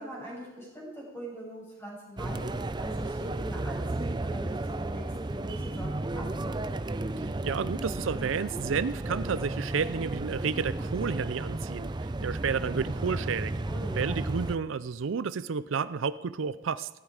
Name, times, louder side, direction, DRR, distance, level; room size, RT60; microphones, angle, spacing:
voice 1, 0.0-6.5 13.6-14.0, right 1 dB, 10° left, -4 dB, 7.3 m, -42 dB
sound 1, 2.2-14.6, right 2 dB, 20° right, 0.5 m, -33 dB
voice 2, 7.2-13.6 13.9-16.9, right 6 dB, 80° right, 16 dB, 0.5 m, -31 dB
17.0 x 16.0 x 4.9 m, 1.0 s
head